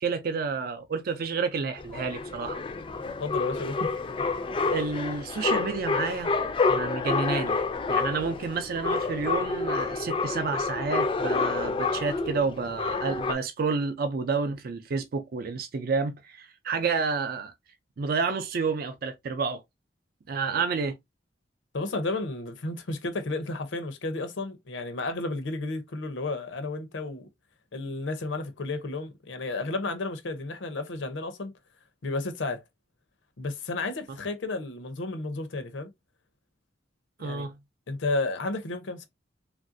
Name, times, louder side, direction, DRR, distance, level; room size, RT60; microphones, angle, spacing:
voice 1, 0.0-2.6 4.7-6.4 6.7-7.6 7.9-17.5 18.0-19.6 20.3-21.0 37.2-37.5, right 4 dB, 55° right, 0.4 m, -30 dB
sound 1, 1.8-13.3, left 4 dB, 30° left, 0.3 m, -28 dB
voice 2, 3.2-3.9 20.5-20.6 21.7-27.3 27.7-31.5 32.0-32.6 33.4-35.9 37.2-37.5 37.9-39.1, left 2 dB, 85° left, 0.7 m, -32 dB
3.1 x 2.5 x 2.5 m
head